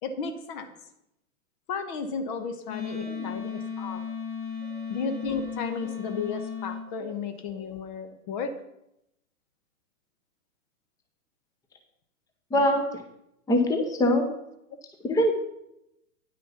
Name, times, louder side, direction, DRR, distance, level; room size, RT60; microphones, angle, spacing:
voice 1, 0.0-0.7 1.7-4.0 4.9-8.5, left 5 dB, 35° left, 8 dB, 1.1 m, -34 dB
Wind instrument woodwind instrument, 2.7-6.8, left 6 dB, 60° left, 2.7 m, -35 dB
voice 2, 12.5-13.0 13.5-14.3 15.0-15.3, left 1 dB, 10° left, 4 dB, 0.9 m, -24 dB
9.6 x 6.3 x 5.7 m, 0.83 s
hypercardioid pair, 115°, 41 cm